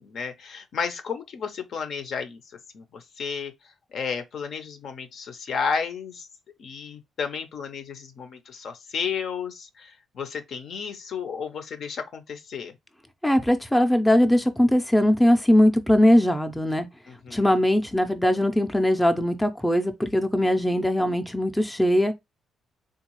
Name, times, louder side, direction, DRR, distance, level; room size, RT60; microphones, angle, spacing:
voice 1, 0.0-2.4 2.7-3.5 3.9-6.3 6.6-12.7 17.1-17.6, left 6 dB, 65° left, 0.6 m, -32 dB
voice 2, 13.2-16.9 17.3-22.2, left 1 dB, 5° left, 0.5 m, -20 dB
3.6 x 2.3 x 3.0 m
cardioid pair, 90°, 0 cm